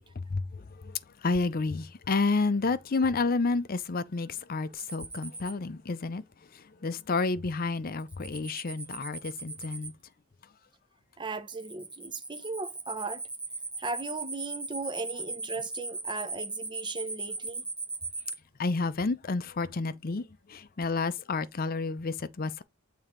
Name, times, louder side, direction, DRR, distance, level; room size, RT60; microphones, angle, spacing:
voice 1, 0.2-6.2 6.5-9.9 18.6-22.6, left 3 dB, 40° left, 0.5 m, -30 dB
sound 1, 4.8-5.5 8.0-9.9 11.5-18.3, right 3 dB, 5° right, 1.2 m, -38 dB
voice 2, 11.2-13.2 13.8-17.6, right 3 dB, 20° right, 0.8 m, -37 dB
7.1 x 3.7 x 4.4 m
head